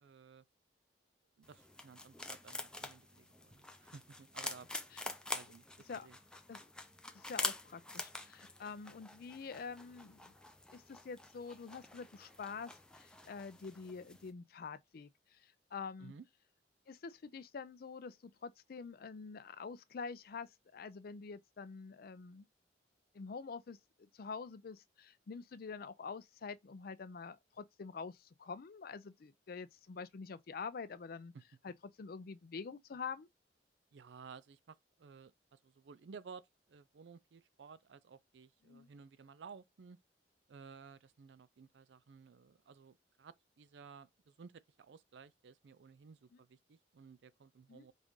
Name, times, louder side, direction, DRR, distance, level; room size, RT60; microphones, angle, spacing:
voice 1, 0.0-0.4 1.4-4.7 5.3-6.2 16.0-16.2 33.9-40.0 40.5-47.9, right 5 dB, 90° right, 0.4 m, -56 dB
sound 1, 1.4-14.3, left 2 dB, 5° left, 0.5 m, -46 dB
voice 2, 7.1-10.3 10.7-15.4 15.7-16.1 16.9-22.5 23.1-31.3 31.6-33.3 38.7-38.9 47.7-47.8, left 5 dB, 55° left, 0.4 m, -46 dB
5.3 x 2.5 x 3.1 m
head